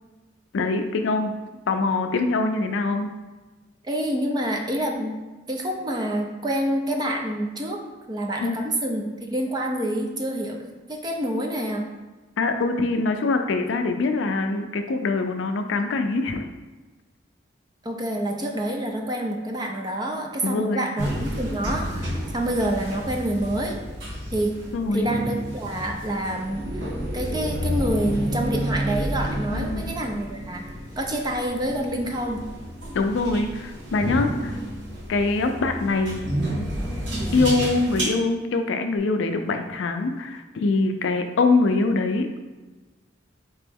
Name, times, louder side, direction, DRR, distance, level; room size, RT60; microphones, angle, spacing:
voice 1, 0.5-1.3 1.7-3.1 8.4-8.6 12.4-16.5 20.4-20.8 24.7-25.1 29.5-29.9 32.9-34.6 35.1-36.2 37.3-42.4, left 3 dB, 70° left, 6 dB, 0.4 m, -23 dB
voice 2, 3.8-7.8 8.1-11.9 17.8-23.8 24.3-24.6 24.9-26.6 27.1-32.5, right 1 dB, 20° right, 1 dB, 0.4 m, -27 dB
sound 1, 21.0-38.0, right 1 dB, 70° right, 1.3 m, -30 dB
4.4 x 2.9 x 3.5 m, 1.2 s
head